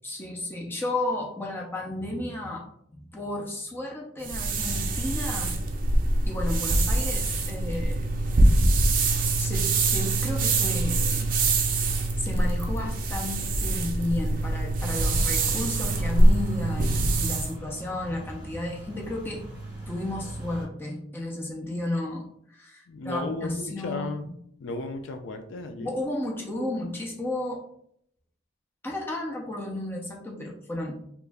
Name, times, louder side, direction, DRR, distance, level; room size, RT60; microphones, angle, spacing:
voice 1, 0.0-2.6 2.9-5.5 6.2-8.1 9.4-11.3 12.2-19.5 19.9-24.3 25.8-27.6 28.8-31.0, left 1 dB, 10° left, -1 dB, 0.5 m, -33 dB
sound 1, 4.2-17.5, right 2 dB, 45° right, 0.4 m, -24 dB
sound 2, 14.8-20.7, right 1 dB, 15° right, 1.3 m, -41 dB
voice 2, 22.9-24.3 24.6-25.9, left 2 dB, 70° left, 6 dB, 0.4 m, -34 dB
3.0 x 2.4 x 3.4 m, 0.69 s
head